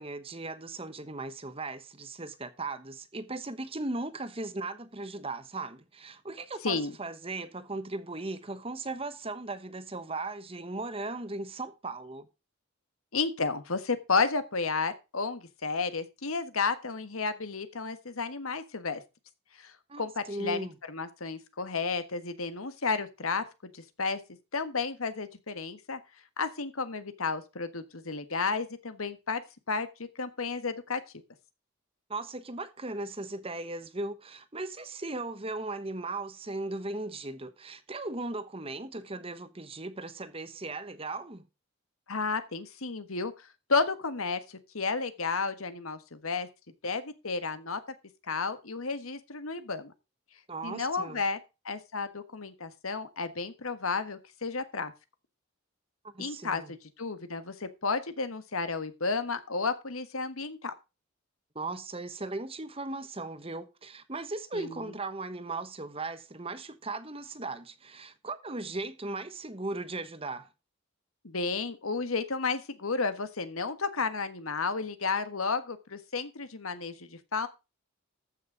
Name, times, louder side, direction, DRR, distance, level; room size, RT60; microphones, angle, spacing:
voice 1, 0.0-12.3 19.9-20.0 20.3-20.7 32.1-41.4 50.5-51.2 56.0-56.7 61.5-70.5, right 2 dB, 25° right, 1.2 m, -37 dB
voice 2, 13.1-19.0 19.6-23.4 23.7-24.2 24.5-26.0 26.4-29.4 29.7-31.0 42.1-46.5 46.8-47.8 48.3-49.9 50.6-51.4 51.6-54.9 56.2-60.7 64.5-64.9 71.2-77.5, left 4 dB, 85° left, 1.5 m, -32 dB
14.0 x 6.4 x 5.0 m
head